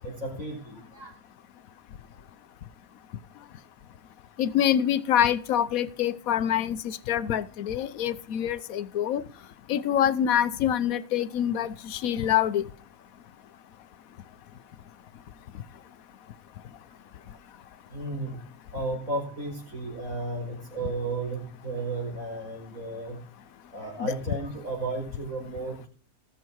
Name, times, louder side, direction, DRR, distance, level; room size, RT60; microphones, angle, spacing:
voice 1, 0.0-1.1 17.9-18.4 18.7-23.2 23.7-25.9, right 2 dB, 60° right, 5.4 m, -34 dB
voice 2, 4.4-9.2 9.7-12.6 24.0-24.1, left 10 dB, 70° left, 1.1 m, -25 dB
19.0 x 7.4 x 4.7 m
omnidirectional pair, 1.5 m